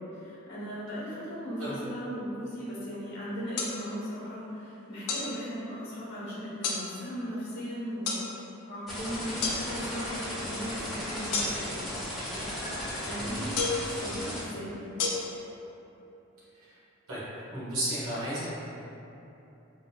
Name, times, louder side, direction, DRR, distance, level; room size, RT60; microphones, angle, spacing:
voice 1, 0.0-8.3 8.7-11.8 12.3-13.5 13.8-14.8, equal, 55° left, -8 dB, 1.1 m, -37 dB
sound 1, 3.6-3.7 5.1-5.3 6.6-6.8 8.1-8.2 9.4-9.6 11.3-11.8 13.6-13.9 15.0-15.1, left 4 dB, 85° left, 0.5 m, -29 dB
sound 2, 8.9-14.4, equal, ahead, 1.1 m, -36 dB
voice 2, 17.5-18.5, right 1 dB, 75° right, -9 dB, 1.2 m, -33 dB
3.7 x 2.7 x 2.3 m, 3.0 s
head